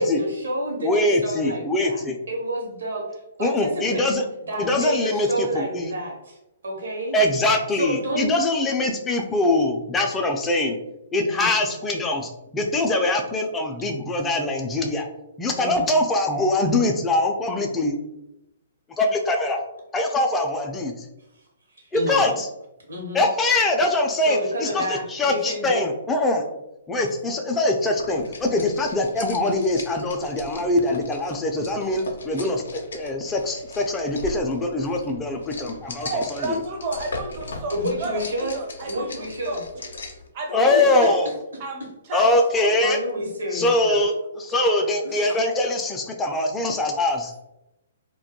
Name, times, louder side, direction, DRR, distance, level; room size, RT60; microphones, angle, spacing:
voice 1, 0.0-2.0 2.3-3.0 3.4-6.4 6.6-7.1 7.8-8.4 11.3-11.5 15.6-15.9 21.8-22.4 22.9-23.2 24.3-25.9 37.7-38.5 38.9-39.6 40.7-41.1 42.8-44.0 45.0-45.3, equal, 80° right, -1 dB, 0.8 m, -29 dB
voice 2, 0.8-2.2 3.4-4.2 4.6-5.9 7.1-10.8 11.1-15.1 15.4-18.0 19.0-19.6 19.9-21.1 21.9-22.5 23.1-26.5 26.9-36.6 40.5-41.3 42.1-43.0 43.5-47.3, left 2 dB, 15° left, 2 dB, 0.3 m, -23 dB
sound 1, 28.0-40.3, left 2 dB, 80° left, 0.4 m, -39 dB
voice 3, 36.0-38.2 38.5-39.6 40.3-41.0 41.6-42.7, right 3 dB, 45° right, 2 dB, 0.5 m, -31 dB
2.2 x 2.2 x 2.8 m, 0.89 s
hypercardioid pair, 130°, 0 cm